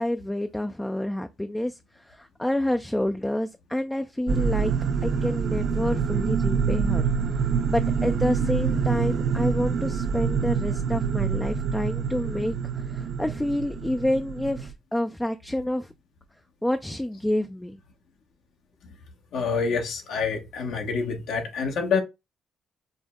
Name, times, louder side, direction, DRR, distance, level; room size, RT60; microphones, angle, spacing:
voice 1, 0.0-4.7 5.0-7.1 7.7-15.9 16.6-17.8, left 1 dB, 5° left, 0.3 m, -28 dB
sound 1, 4.3-14.7, right 6 dB, 65° right, 0.5 m, -26 dB
voice 2, 19.3-22.0, left 5 dB, 80° left, 1.0 m, -27 dB
5.1 x 2.0 x 3.6 m
cardioid pair, 90°, 0 cm